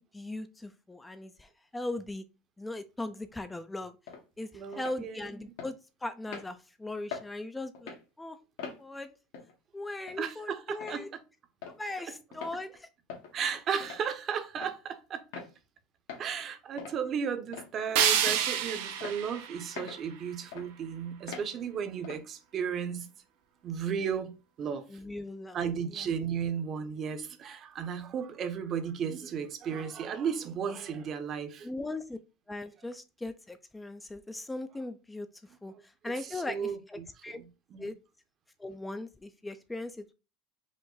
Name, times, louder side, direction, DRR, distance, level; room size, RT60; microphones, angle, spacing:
voice 1, 0.0-2.2 2.6-3.9 4.4-8.4 8.8-9.1 9.7-11.1 11.7-12.9 24.9-26.1 31.6-32.2 32.5-35.3 35.6-37.4 37.8-38.0 38.6-40.1, left 2 dB, 10° left, 0.4 m, -39 dB
sound 1, 4.1-4.2 4.7-5.0 5.6-5.7 6.3-6.5 7.1-7.3 7.7-8.0 8.6-8.8 9.3-9.5 10.1-10.2 10.8-11.0 11.6-11.8 12.3-12.6 13.1-13.3 13.8-14.0 14.6-14.8 15.3-15.5 16.1-16.2 16.8-17.0 17.5-17.8 18.3-18.5 19.0-19.2 19.8-20.0 20.5-20.7 21.3-21.5 22.0-22.2, left 6 dB, 75° left, 1.5 m, -42 dB
voice 2, 4.5-5.3 10.2-11.0 13.3-15.2 16.2-23.1 23.6-24.9 25.5-31.7 36.3-37.1 37.3-37.5 37.7-37.9, right 7 dB, 40° right, 0.8 m, -34 dB
sound 2, 18.0-20.9, right 9 dB, 75° right, 0.8 m, -30 dB
5.2 x 2.1 x 3.9 m
supercardioid pair, 110°, 0 cm